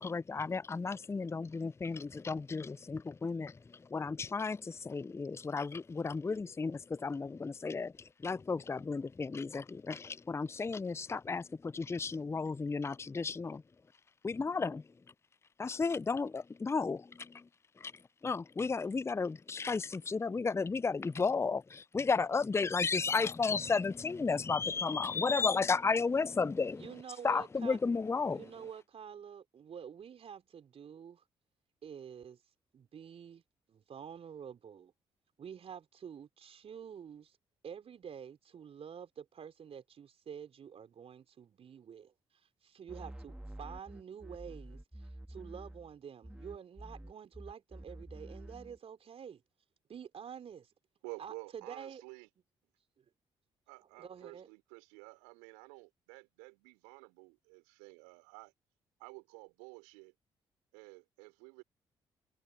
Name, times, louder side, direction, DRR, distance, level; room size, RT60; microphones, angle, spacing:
voice 1, 0.0-13.6 14.2-14.9 15.6-17.5 17.8-17.9 18.2-27.0 27.2-28.5, left 4 dB, 20° left, 0.5 m, -33 dB
voice 2, 26.7-27.8 28.3-31.2 31.8-32.4 32.7-33.4 33.7-34.9 35.4-37.4 37.6-49.4 49.9-50.7 51.2-52.0 54.0-54.5, right 7 dB, 50° right, 4.2 m, -48 dB
sound 1, 42.9-46.0 46.2-48.8, right 1 dB, 5° right, 2.0 m, -48 dB
voice 3, 51.0-52.3 53.7-58.5 59.0-60.1 60.7-61.6, right 35 dB, 75° right, 5.4 m, -51 dB
figure-of-eight pair, 40°, 13 cm